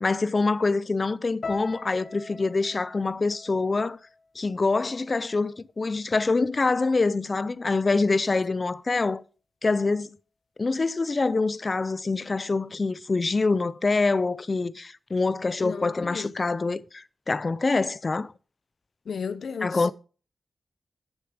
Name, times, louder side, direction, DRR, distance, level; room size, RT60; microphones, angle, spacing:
voice 1, 0.0-4.0 4.4-9.2 9.6-10.2 10.6-18.3 19.6-19.9, left 3 dB, 30° left, 0.5 m, -25 dB
sound 1, 1.4-5.6 5.9-6.7 7.3-7.5, left 4 dB, 50° left, 1.4 m, -44 dB
voice 2, 15.6-16.3 19.1-19.9, left 6 dB, 70° left, 0.7 m, -34 dB
11.0 x 6.7 x 5.0 m
wide cardioid pair, 165°, 0 cm